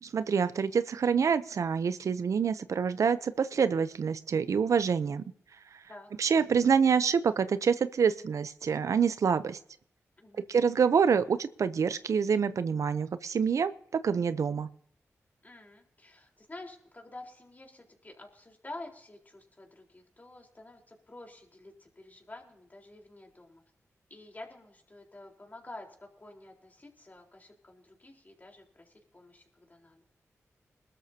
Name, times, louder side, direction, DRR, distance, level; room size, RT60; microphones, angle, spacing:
voice 1, 0.0-5.2 6.2-9.6 10.5-14.7, right 6 dB, 75° right, 14 dB, 0.7 m, -26 dB
voice 2, 15.4-23.6 24.1-30.0, left 2 dB, 30° left, 1 dB, 4.2 m, -49 dB
20.5 x 13.0 x 2.8 m, 0.67 s
cardioid pair, 50°, 5 cm